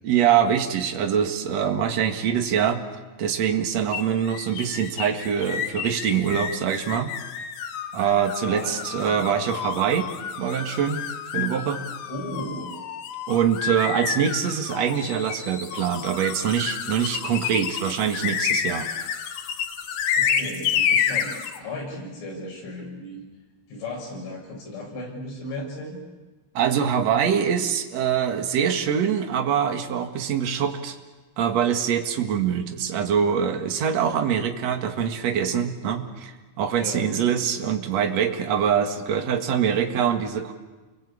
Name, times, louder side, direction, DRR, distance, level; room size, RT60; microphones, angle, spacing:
voice 1, 0.0-2.8 3.2-7.1 7.9-10.1 10.4-11.0 11.3-11.8 13.3-18.9 26.5-31.0 31.4-40.5, right 8 dB, 55° right, 4 dB, 2.1 m, -24 dB
sound 1, 3.9-21.6, left 8 dB, 65° left, 2.7 m, -29 dB
voice 2, 8.5-9.2 12.1-12.7 20.2-23.2 23.7-26.0 36.8-37.1, left 1 dB, 80° left, -1 dB, 9.5 m, -35 dB
30.0 x 23.0 x 8.6 m, 1.2 s
omnidirectional pair, 5.5 m